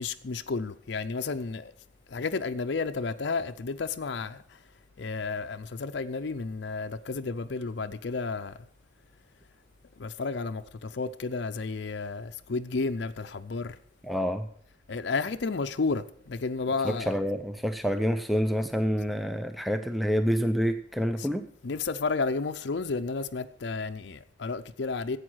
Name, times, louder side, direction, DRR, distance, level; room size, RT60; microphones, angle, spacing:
voice 1, 0.0-1.7 2.1-4.6 5.0-8.6 10.0-13.8 14.9-17.2 21.2-21.3 21.6-25.2, left 4 dB, 65° left, 0.5 m, -32 dB
voice 2, 14.0-14.5 16.8-21.4, equal, ahead, 0.4 m, -27 dB
11.0 x 8.1 x 6.1 m
head